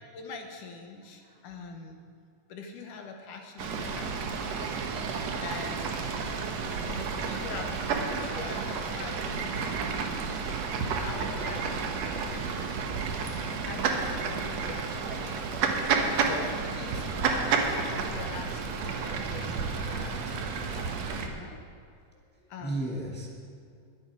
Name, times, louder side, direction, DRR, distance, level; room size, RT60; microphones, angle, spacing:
voice 1, 0.1-2.0 2.5-4.7 5.4-6.0 6.8-10.3 10.9-13.0 13.7-20.7 21.2-21.6 22.5-22.8, left 4 dB, 70° left, 3 dB, 2.4 m, -44 dB
Fowl / Bird, 3.6-21.3, right 5 dB, 65° right, 1.8 m, -31 dB
voice 2, 22.1-23.3, right 1 dB, 10° left, -4 dB, 0.6 m, -37 dB
21.0 x 8.6 x 4.8 m, 2.3 s
omnidirectional pair, 4.0 m